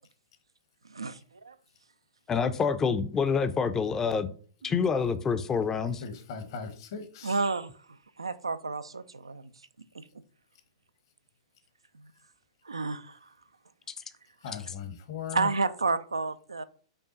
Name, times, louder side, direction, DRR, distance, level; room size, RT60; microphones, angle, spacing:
voice 1, 2.3-4.3 4.6-6.0, left 5 dB, 20° left, 0.4 m, -27 dB
voice 2, 6.0-7.4 14.4-15.5, left 7 dB, 55° left, 0.9 m, -38 dB
voice 3, 7.2-9.5 9.8-10.0 11.9-12.1 12.6-13.3 15.3-16.6, right 4 dB, 90° right, 0.3 m, -31 dB
5.4 x 2.3 x 3.9 m
figure-of-eight pair, 105°, 3 cm